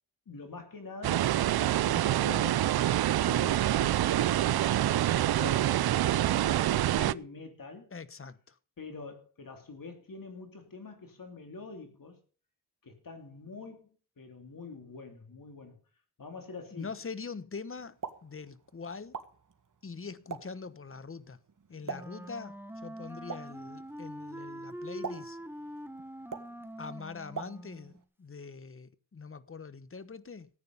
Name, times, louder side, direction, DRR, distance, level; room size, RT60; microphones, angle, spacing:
voice 1, 0.3-7.9 8.8-12.2 12.8-13.9 14.2-15.8 16.2-16.9, left 3 dB, 55° left, 3.2 m, -45 dB
sound 1, 1.0-7.1, right 13 dB, 70° right, 0.5 m, -26 dB
voice 2, 7.9-8.6 16.7-19.2 19.8-21.4 21.7-22.5 22.8-25.4 26.8-30.5, left 5 dB, 35° left, 1.1 m, -43 dB
Explosion, 17.8-28.0, right 5 dB, 55° right, 1.9 m, -46 dB
Wind instrument woodwind instrument, 21.8-28.0, equal, 5° right, 1.4 m, -44 dB
14.5 x 9.3 x 5.5 m
cardioid pair, 65°, 39 cm